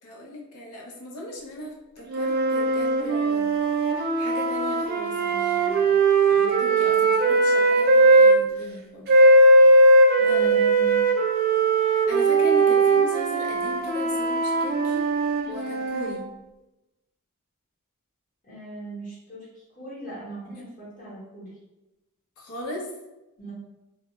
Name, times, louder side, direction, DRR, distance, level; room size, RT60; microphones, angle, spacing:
voice 1, 0.0-3.5 3.9-5.9 6.2-9.1 10.2-10.6 11.8-15.1 15.5-16.2 20.4-20.6 22.4-22.9, left 1 dB, 85° left, 0 dB, 0.6 m, -38 dB
sound 1, 2.1-8.4 9.1-16.2, right 2 dB, 40° right, 0.3 m, -19 dB
voice 2, 10.2-11.0 18.4-19.5 19.8-21.5 23.4-23.5, right 2 dB, 35° left, -6 dB, 0.9 m, -38 dB
2.1 x 2.1 x 2.9 m, 0.99 s
head